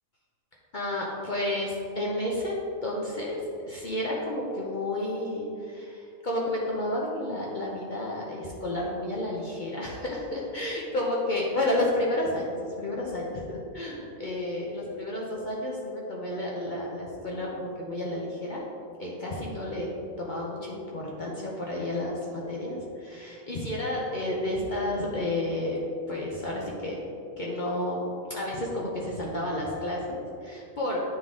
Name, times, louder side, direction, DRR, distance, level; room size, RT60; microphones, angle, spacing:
voice 1, 0.7-18.6 19.0-19.9 20.2-27.0 27.4-31.0, left 1 dB, 45° left, -4 dB, 0.8 m, -31 dB
8.6 x 3.7 x 3.7 m, 2.5 s
omnidirectional pair, 1.4 m